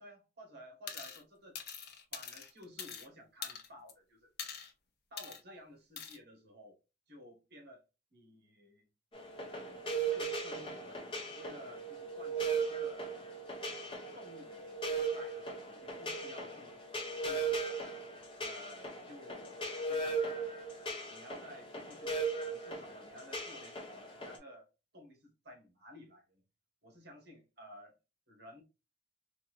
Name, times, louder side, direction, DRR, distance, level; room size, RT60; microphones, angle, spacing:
voice 1, 0.0-1.6 2.1-4.3 5.1-6.8 7.1-7.8 8.1-8.9 10.0-11.1 11.3-13.1 14.1-16.8 17.2-17.8 18.4-19.5 19.9-20.2 21.1-24.7 24.9-26.4 26.8-27.9 28.3-28.6, equal, 60° right, 1.3 m, -54 dB
sound 1, 0.9-1.2 1.5-3.1 3.4-3.9 4.4-4.7 5.2-5.4 6.0-6.2, left 7 dB, 55° left, 0.7 m, -44 dB
sound 2, 9.1-24.4, right 4 dB, 30° left, 0.9 m, -38 dB
4.1 x 2.5 x 2.4 m
head